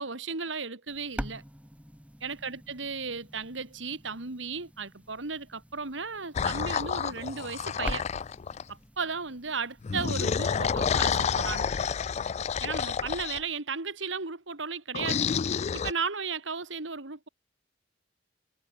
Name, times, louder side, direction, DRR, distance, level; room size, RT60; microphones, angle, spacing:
voice 1, 0.0-1.4 2.2-8.0 8.7-11.7 12.6-17.3, right 5 dB, 85° right, 2.4 m, -35 dB
sound 1, 0.9-11.1, equal, 5° right, 1.9 m, -45 dB
sound 2, 6.3-8.7 9.8-13.4 14.9-15.9, left 6 dB, 35° left, 0.4 m, -29 dB
head